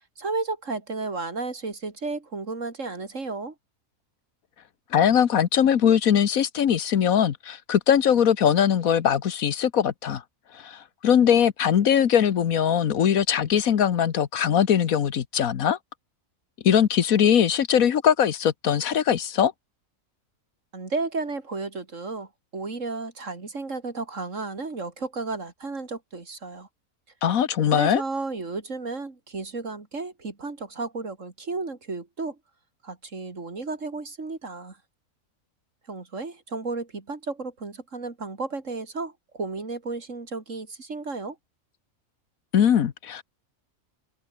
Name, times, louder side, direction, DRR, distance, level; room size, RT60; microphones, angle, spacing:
voice 1, 0.0-3.5 20.7-26.7 27.7-32.4 32.8-34.8 35.9-41.4, right 3 dB, 60° right, 3.3 m, -33 dB
voice 2, 4.9-10.2 10.5-15.8 16.6-19.5 27.2-28.0 42.5-43.2, left 8 dB, 75° left, 1.5 m, -21 dB
omnidirectional pair, 1.5 m